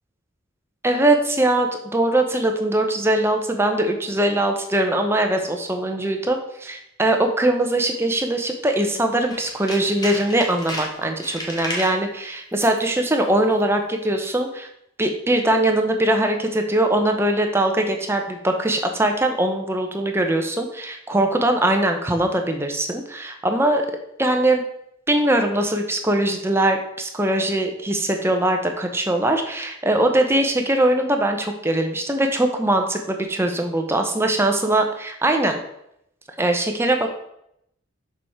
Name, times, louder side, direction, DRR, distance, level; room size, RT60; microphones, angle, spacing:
voice 1, 0.8-14.7 15.0-23.8 24.2-24.6 25.1-35.6 36.4-37.1, right 1 dB, 10° right, 4 dB, 0.8 m, -21 dB
Tools, 9.2-12.0 12.5-12.8 13.1-13.2, left 1 dB, 20° left, 1.3 m, -33 dB
6.8 x 4.9 x 4.4 m, 0.77 s
head